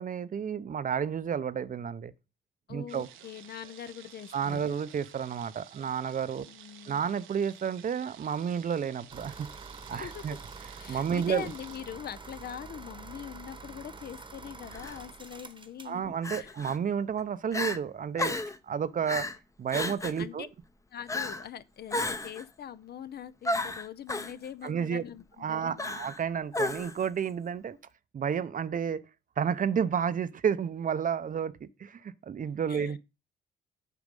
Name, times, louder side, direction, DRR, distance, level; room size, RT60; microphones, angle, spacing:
voice 1, 0.0-2.1 2.7-3.1 4.3-6.5 6.9-9.5 9.9-10.4 10.9-11.5 15.8-18.4 18.6-19.3 19.6-20.5 24.6-25.0 25.4-27.8 28.1-29.0 29.4-33.0, right 7 dB, 45° right, 0.7 m, -31 dB
voice 2, 2.7-4.6 6.4-7.0 9.9-10.4 10.8-16.6 20.2-20.5 20.9-26.0 32.7-33.0, left 9 dB, 55° left, 0.6 m, -43 dB
sound 1, 2.9-11.8, right 10 dB, 85° right, 1.0 m, -52 dB
sound 2, 9.1-16.0, right 4 dB, 25° right, 1.1 m, -46 dB
Crying sobbing, 14.7-15.0 16.2-16.8 17.2-17.3 17.5-17.8 18.2-18.6 19.1-19.4 19.7-20.2 21.1-21.5 21.9-22.4 23.4-24.3 25.8-26.2 26.5-27.1, left 2 dB, 15° left, 0.8 m, -32 dB
8.3 x 5.1 x 5.3 m
cardioid pair, 90°, 20 cm